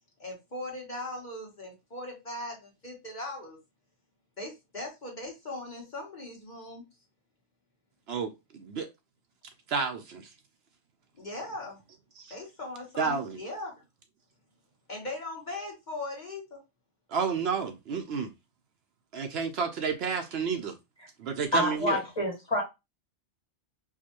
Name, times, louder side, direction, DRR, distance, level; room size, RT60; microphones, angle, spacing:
voice 1, 0.2-3.6 4.4-6.8 11.2-11.8 12.3-13.7 14.9-16.6 21.9-22.0, left 2 dB, 40° left, 1.3 m, -39 dB
voice 2, 8.1-8.9 9.7-10.3 12.2-12.3 13.0-13.4 17.1-18.3 19.1-20.7 21.2-22.0, right 5 dB, 65° right, 0.8 m, -31 dB
voice 3, 21.5-22.6, left 1 dB, 20° left, 1.7 m, -27 dB
4.7 x 2.2 x 2.9 m
omnidirectional pair, 1.2 m